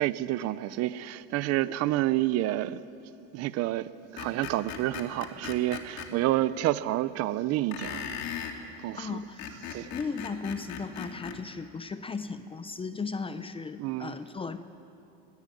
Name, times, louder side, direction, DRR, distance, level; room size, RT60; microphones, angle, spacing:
voice 1, 0.0-2.8 3.3-8.0 8.8-9.2 9.7-9.9 13.8-14.1, right 15 dB, 50° right, 0.6 m, -29 dB
Screech, 4.2-6.1 7.7-8.6 9.2-11.4, left 8 dB, 60° left, 2.5 m, -38 dB
voice 2, 9.0-9.5 9.9-14.6, left 4 dB, 15° left, 0.7 m, -36 dB
19.0 x 18.5 x 9.3 m
cardioid pair, 125°, 32 cm